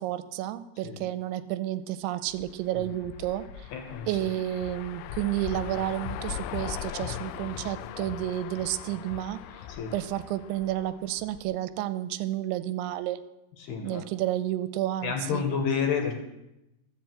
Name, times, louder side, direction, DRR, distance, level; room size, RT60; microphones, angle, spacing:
voice 1, 0.0-3.7 4.1-9.4 9.9-13.2 13.8-15.5, right 13 dB, 85° right, 12 dB, 2.9 m, -31 dB
sound 1, 2.3-11.5, left 10 dB, 85° left, 2.9 m, -39 dB
voice 2, 3.7-4.1 9.7-9.9 13.6-14.0 15.0-16.1, left 6 dB, 70° left, 3 dB, 2.8 m, -29 dB
13.0 x 7.4 x 7.7 m, 0.90 s
omnidirectional pair, 5.4 m